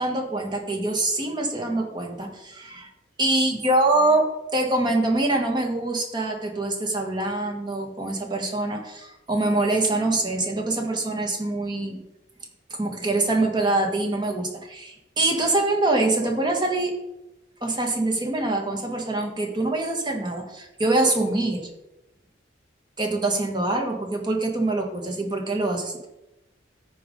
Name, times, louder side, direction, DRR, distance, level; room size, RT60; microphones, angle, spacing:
voice 1, 0.0-2.9 3.2-4.3 4.5-12.0 12.8-16.9 17.6-21.7 23.0-26.1, right 2 dB, 25° right, 2 dB, 1.6 m, -24 dB
13.5 x 5.3 x 3.8 m, 0.93 s
head